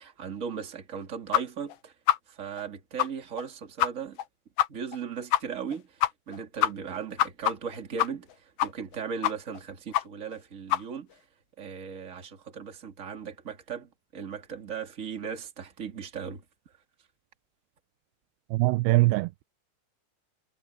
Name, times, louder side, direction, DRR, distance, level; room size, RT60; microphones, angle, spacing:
voice 1, 0.0-1.9 2.3-4.2 4.7-11.1 11.6-16.4, right 6 dB, 25° right, 1.9 m, -37 dB
sound 1, 1.3-1.4 1.7-1.8 2.1-2.2 2.6-2.7 3.0-3.1 3.4-3.5 3.8-3.9 4.2-4.3 4.6-4.7 4.9-5.0 5.3-5.4 5.7-5.8 6.0-6.4 6.6-8.3 8.6-9.0 9.2-9.6 9.9-10.0 10.3-10.4 10.7-10.8, left 14 dB, 75° left, 2.5 m, -24 dB
voice 2, 18.5-19.4, right 20 dB, 85° right, 2.5 m, -23 dB
omnidirectional pair, 4.6 m